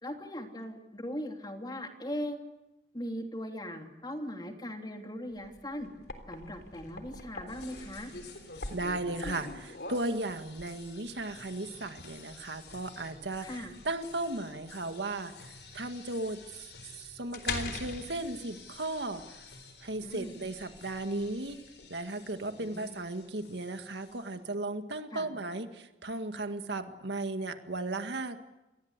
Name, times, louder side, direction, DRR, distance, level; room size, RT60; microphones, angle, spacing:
voice 1, 0.0-2.4 2.9-5.9 6.3-8.1 13.4-13.8 20.0-20.4 22.6-22.9 25.1-25.3, equal, 25° left, 3 dB, 3.0 m, -39 dB
sound 1, 5.4-21.9, left 3 dB, 65° left, 3.5 m, -44 dB
sound 2, 7.5-24.4, left 4 dB, 85° left, 7.9 m, -53 dB
voice 2, 8.7-16.4 16.8-19.2 19.8-21.6 21.9-28.4, right 2 dB, 80° right, 7 dB, 1.9 m, -36 dB
28.5 x 22.0 x 8.2 m, 0.99 s
head